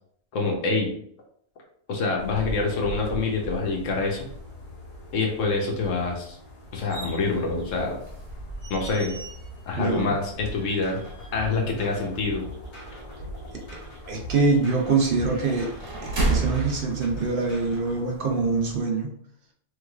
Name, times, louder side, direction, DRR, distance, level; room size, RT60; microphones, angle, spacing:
voice 1, 0.3-0.9 1.9-4.2 5.1-6.4 6.7-8.0 8.7-9.1 9.7-11.0 11.3-12.5, left 3 dB, 85° left, 0 dB, 1.2 m, -26 dB
sound 1, 2.2-18.8, equal, 45° left, 0.8 m, -42 dB
sound 2, 6.9-17.8, right 3 dB, 80° right, 1.3 m, -34 dB
voice 2, 9.8-10.2 14.1-15.7 16.0-19.2, right 4 dB, 55° right, 1 dB, 0.7 m, -24 dB
sound 3, 10.3-18.0, equal, 65° left, 1.3 m, -42 dB
3.3 x 3.2 x 2.3 m, 0.66 s
omnidirectional pair, 1.3 m